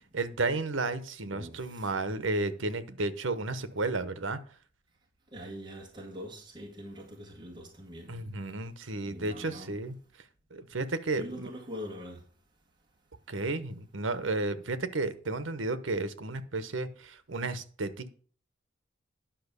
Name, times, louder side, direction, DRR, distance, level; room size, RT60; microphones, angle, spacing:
voice 1, 0.1-4.4 8.1-9.9 10.5-11.5 13.3-18.1, right 2 dB, 80° right, 1.0 m, -32 dB
voice 2, 1.3-1.9 5.3-8.2 9.0-9.8 11.1-12.2, equal, 25° right, 1.9 m, -43 dB
10.5 x 5.7 x 6.8 m
head